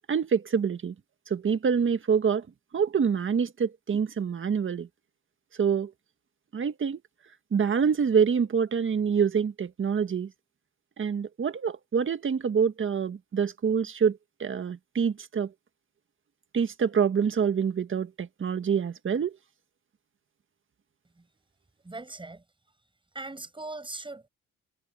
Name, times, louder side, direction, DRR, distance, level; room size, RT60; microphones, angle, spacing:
voice 1, 0.1-0.9 1.3-2.5 2.7-4.9 5.6-5.9 6.5-7.0 7.5-10.3 11.0-15.5 16.5-19.4, right 6 dB, 40° right, 1.7 m, -26 dB
voice 2, 21.8-22.4 23.1-24.3, right 2 dB, 15° right, 5.8 m, -39 dB
cardioid pair, 90°, 30 cm